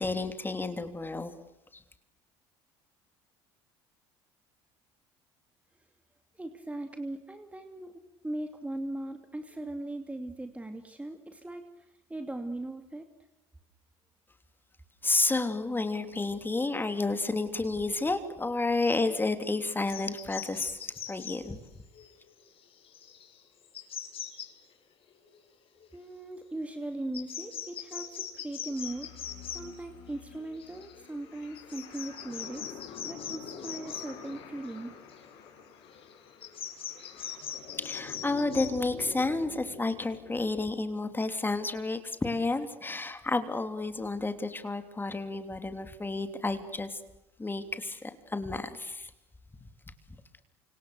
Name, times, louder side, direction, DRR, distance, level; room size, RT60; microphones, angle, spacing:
voice 1, 0.0-1.3 1.7-1.8 15.0-21.6 37.8-47.0 47.4-49.1, left 3 dB, 15° left, 8 dB, 3.1 m, -31 dB
voice 2, 6.3-13.1 25.9-29.1 29.5-32.8 33.0-34.9, right 1 dB, 10° right, 6 dB, 2.7 m, -39 dB
sound 1, 19.9-21.5 21.9-22.1 22.4-22.5 22.8-23.4 23.7-24.5 25.8-25.9 26.3-26.4 27.1-29.6 30.4-31.3 31.6-34.7 35.1-35.6 35.9-38.7, left 8 dB, 50° left, 5.6 m, -41 dB
sound 2, 28.7-40.5, left 7 dB, 75° left, 6.4 m, -47 dB
29.0 x 26.5 x 6.7 m, 0.90 s
hypercardioid pair, 75°, 12 cm